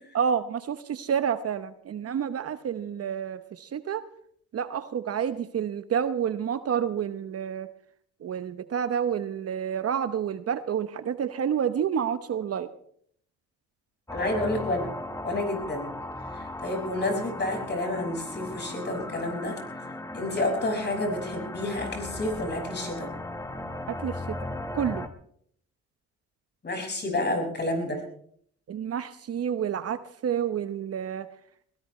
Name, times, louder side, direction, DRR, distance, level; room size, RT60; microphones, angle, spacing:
voice 1, 0.1-4.0 4.5-7.7 8.2-12.7 23.9-24.2 24.7-25.1 28.7-31.3, right 8 dB, 50° right, 12 dB, 0.9 m, -29 dB
voice 2, 14.1-14.9 15.2-15.9 16.3-19.6 20.1-23.1 26.6-28.0, left 1 dB, 35° left, 2 dB, 5.8 m, -29 dB
sound 1, 14.1-25.1, left 1 dB, 10° left, 1.3 m, -37 dB
21.0 x 17.5 x 3.2 m, 0.63 s
cardioid pair, 90°, 30 cm